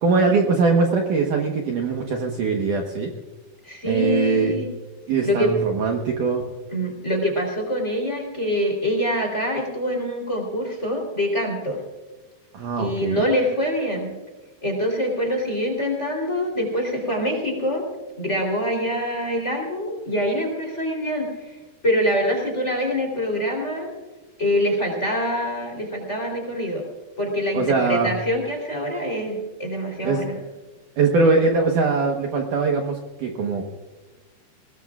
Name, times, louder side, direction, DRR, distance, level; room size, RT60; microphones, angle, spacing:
voice 1, 0.0-3.1 3.8-4.5 5.1-6.5 12.5-13.2 27.5-28.1 30.0-30.2 31.0-33.6, right 4 dB, 65° right, 1 dB, 2.3 m, -21 dB
voice 2, 3.6-4.7 5.2-5.5 6.7-11.8 12.8-14.1 14.6-17.8 18.2-21.6 21.8-23.9 24.4-26.8 27.2-30.4, equal, 20° left, 2 dB, 3.2 m, -25 dB
21.5 x 19.0 x 2.4 m, 1.2 s
omnidirectional pair, 4.9 m